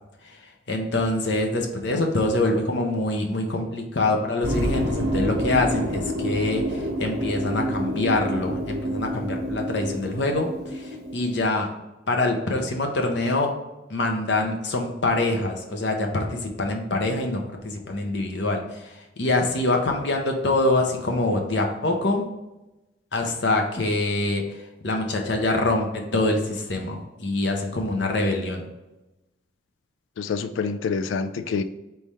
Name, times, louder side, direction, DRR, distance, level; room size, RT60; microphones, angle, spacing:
voice 1, 0.7-11.7 12.1-13.5 13.9-18.6 19.2-22.2 23.1-24.4 24.8-25.9 26.1-28.6, left 2 dB, 65° left, 3 dB, 0.8 m, -25 dB
sound 1, 4.4-11.4, equal, 85° right, 1.2 m, -28 dB
voice 2, 30.2-31.6, left 5 dB, 90° left, 10 dB, 0.3 m, -27 dB
4.2 x 3.4 x 3.4 m, 0.97 s
head